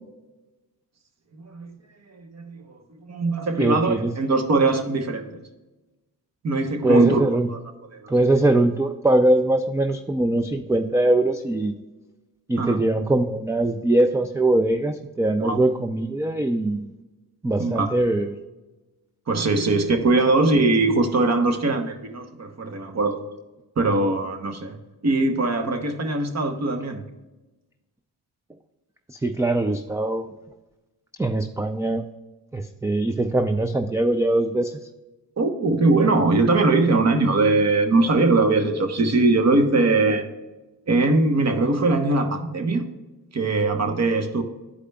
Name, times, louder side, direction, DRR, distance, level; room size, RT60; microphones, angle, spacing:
voice 1, 1.4-1.8 2.1-5.4 6.4-7.2 7.5-7.6 7.9-8.1 12.6-12.8 15.4-15.6 17.6-18.0 19.3-23.2 23.8-24.8 25.0-27.1 35.4-40.2 40.9-42.9 43.3-44.4, right 3 dB, 40° right, 6 dB, 1.1 m, -21 dB
voice 2, 3.6-4.1 6.8-7.5 8.1-11.7 12.5-16.9 17.4-18.4 29.1-30.2 31.2-32.0 32.5-34.8, right 1 dB, 10° right, 6 dB, 0.4 m, -22 dB
11.5 x 4.9 x 2.3 m, 1.1 s
supercardioid pair, 60°, 41 cm